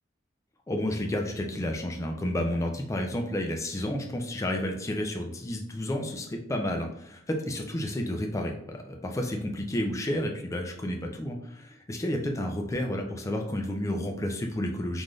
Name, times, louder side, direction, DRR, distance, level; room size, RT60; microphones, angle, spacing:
voice 1, 0.7-15.0, left 1 dB, 15° left, 2 dB, 0.3 m, -31 dB
3.3 x 2.5 x 2.3 m, 0.73 s
head